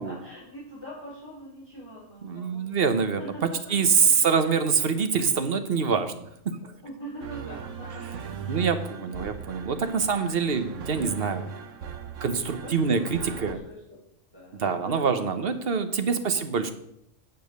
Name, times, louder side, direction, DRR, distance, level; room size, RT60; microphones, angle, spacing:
voice 1, 0.0-2.8 3.2-4.1 6.8-8.7 9.1-9.5 11.4-11.5 12.6-14.0 14.3-15.5 16.4-16.7, equal, 20° left, -10 dB, 4.7 m, -43 dB
voice 2, 2.2-3.2 3.7-6.3 8.5-11.5 12.2-13.6 14.6-16.7, right 5 dB, 50° right, 9 dB, 1.2 m, -25 dB
sound 1, 7.2-13.5, right 7 dB, 75° right, 1.2 m, -38 dB
9.5 x 7.2 x 6.6 m, 0.74 s
omnidirectional pair, 1.3 m